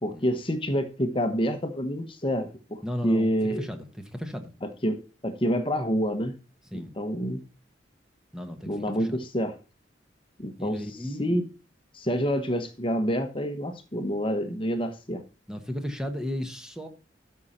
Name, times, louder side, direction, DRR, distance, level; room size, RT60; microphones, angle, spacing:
voice 1, 0.0-3.7 4.6-5.0 5.2-6.3 6.7-7.4 8.7-9.5 10.4-10.8 11.2-11.4 11.9-15.2, equal, 30° left, 1.0 m, -27 dB
voice 2, 2.8-4.5 6.7-7.0 8.3-8.7 9.0-9.2 10.6-11.4 15.5-16.9, equal, 5° right, 1.2 m, -35 dB
13.0 x 5.6 x 4.3 m
head